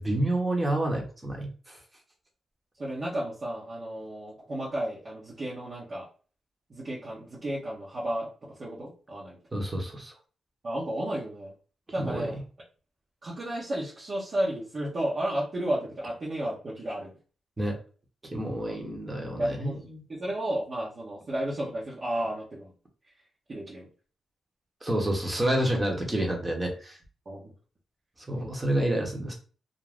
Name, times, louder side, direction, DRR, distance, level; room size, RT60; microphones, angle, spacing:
voice 1, 0.0-1.8 9.5-10.1 12.0-12.3 17.6-17.7 18.3-19.8 24.8-27.0 28.3-29.3, right 1 dB, 20° right, 0 dB, 1.0 m, -28 dB
voice 2, 2.8-6.1 6.7-9.4 10.6-11.5 11.9-12.4 13.2-17.2 18.7-18.8 19.3-22.7 23.5-23.9 27.2-27.5, right 1 dB, 45° right, -7 dB, 0.9 m, -33 dB
2.5 x 2.1 x 3.4 m, 0.38 s
cardioid pair, 80°, 0 cm